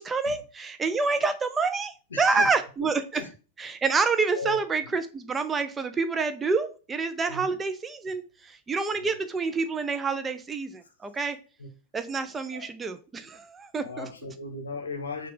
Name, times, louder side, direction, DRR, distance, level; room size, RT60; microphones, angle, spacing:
voice 1, 0.0-3.2 3.6-11.4 11.9-14.1, right 4 dB, 15° right, 0.4 m, -28 dB
voice 2, 2.1-2.5 2.8-3.3 4.3-4.6 7.3-7.6 9.0-9.1 11.6-11.7 12.5-12.7 13.8-15.3, left 3 dB, 70° left, 0.7 m, -37 dB
5.7 x 2.4 x 3.3 m
figure-of-eight pair, 90°, 0 cm